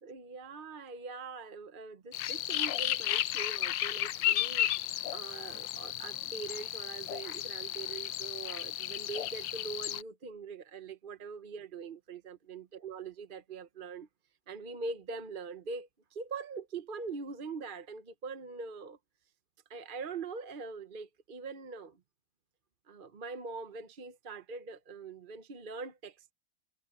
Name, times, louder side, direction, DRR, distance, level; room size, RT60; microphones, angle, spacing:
voice 1, 0.0-4.7 5.1-14.1 14.5-19.0 19.7-22.0 22.9-26.3, right 4 dB, 40° right, 0.9 m, -43 dB
sound 1, 2.1-10.0, left 12 dB, 85° left, 1.4 m, -33 dB
omnidirectional pair, 1.9 m